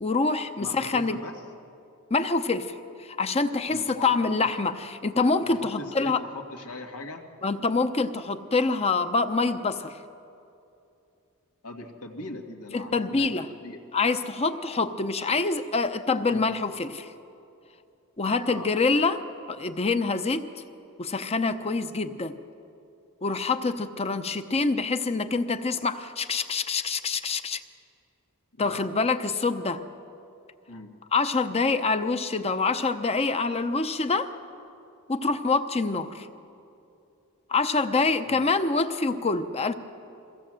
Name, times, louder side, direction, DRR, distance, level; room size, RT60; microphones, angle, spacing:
voice 1, 0.0-1.2 2.1-2.7 3.0-6.2 7.4-10.0 12.7-13.5 13.9-17.1 18.2-20.5 21.0-22.4 23.2-27.6 28.6-29.8 31.1-34.3 35.1-36.3 37.5-39.7, left 3 dB, 30° left, 9 dB, 0.7 m, -26 dB
voice 2, 0.6-1.4 3.7-4.5 5.4-7.2 11.6-13.8 16.3-16.6 18.5-18.7 28.5-28.9 30.7-30.9 38.3-38.4, left 2 dB, 90° left, 3 dB, 2.0 m, -40 dB
23.0 x 16.5 x 7.6 m, 2.7 s
head